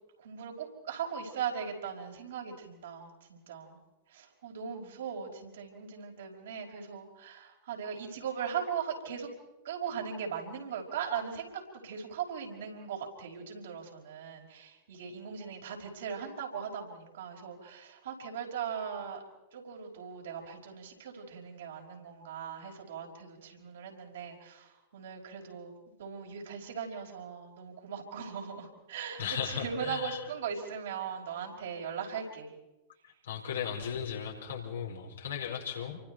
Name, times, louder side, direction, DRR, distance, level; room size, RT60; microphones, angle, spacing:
voice 1, 0.2-3.8 4.1-9.3 9.6-19.2 19.5-32.5, right 7 dB, 65° right, 0 dB, 5.4 m, -39 dB
voice 2, 29.2-30.2 33.2-36.0, left 7 dB, 70° left, -1 dB, 5.2 m, -36 dB
29.0 x 24.5 x 4.5 m, 0.98 s
figure-of-eight pair, 95°, 0 cm